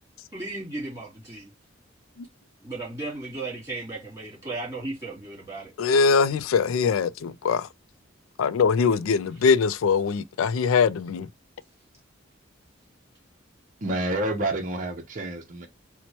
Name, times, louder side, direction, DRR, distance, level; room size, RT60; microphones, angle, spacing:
voice 1, 0.3-1.5 2.6-5.7, right 2 dB, 15° right, 2.4 m, -35 dB
voice 2, 5.8-7.7 8.4-11.3, left 5 dB, 85° left, 0.3 m, -22 dB
voice 3, 13.8-15.7, right 1 dB, 40° right, 0.6 m, -28 dB
4.4 x 2.1 x 2.8 m
head